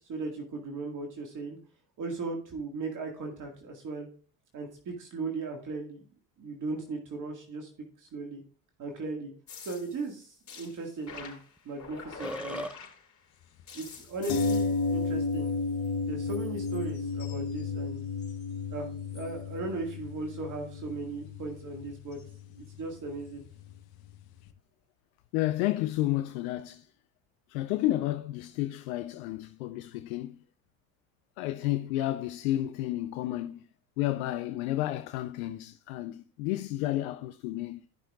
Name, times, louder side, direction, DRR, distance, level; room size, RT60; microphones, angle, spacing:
voice 1, 0.1-1.6 2.0-4.1 4.5-6.0 6.4-7.7 8.0-8.4 8.8-9.3 9.6-11.4 11.7-12.7 13.7-15.5 16.0-18.0 18.7-18.9 19.1-22.2 22.6-23.4, right 3 dB, 45° right, 2.0 m, -37 dB
sound 1, 9.5-13.3 13.7-15.9 16.2-18.5 19.0-19.4 22.1-22.3 23.2-23.3, left 6 dB, 40° left, 4.3 m, -48 dB
Burping eructation, 11.6-11.7 11.9-12.8, equal, 5° right, 0.4 m, -36 dB
sound 2, 14.3-24.2 24.5-24.6, left 4 dB, 60° left, 1.1 m, -33 dB
voice 2, 25.3-26.9 27.5-30.4 31.4-33.6 34.0-37.9, left 15 dB, 80° left, 0.7 m, -31 dB
15.5 x 5.8 x 2.4 m
supercardioid pair, 85°, 42 cm